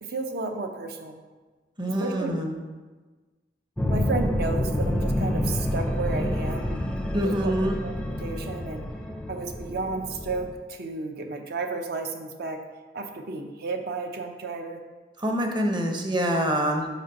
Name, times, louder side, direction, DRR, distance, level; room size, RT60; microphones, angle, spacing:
voice 1, 0.0-1.1 1.9-2.3 3.9-6.9 7.2-7.5 7.8-8.8 9.3-12.6 12.9-14.8, right 3 dB, 60° right, 5 dB, 0.6 m, -32 dB
voice 2, 1.8-2.5 7.1-7.8 15.2-16.9, equal, 25° right, 3 dB, 0.7 m, -25 dB
sound 1, 3.8-10.5, left 1 dB, 5° left, 0.4 m, -28 dB
5.1 x 4.2 x 5.2 m, 1.3 s
head